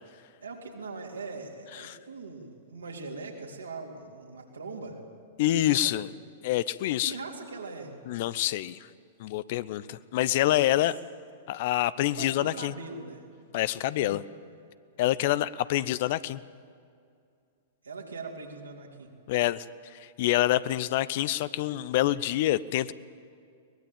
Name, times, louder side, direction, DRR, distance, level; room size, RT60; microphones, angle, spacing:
voice 1, 0.4-5.0 5.6-6.1 7.1-8.0 10.7-10.9 12.0-13.2 14.0-14.1 17.8-19.1, right 3 dB, 80° right, 0 dB, 4.0 m, -41 dB
voice 2, 5.4-6.1 6.4-7.2 8.1-8.8 9.2-11.0 11.5-12.7 13.5-14.2 15.0-16.4 19.3-19.6 19.9-22.9, left 14 dB, 50° left, 17 dB, 0.7 m, -26 dB
22.5 x 20.0 x 9.0 m, 2.4 s
figure-of-eight pair, 100°, 0 cm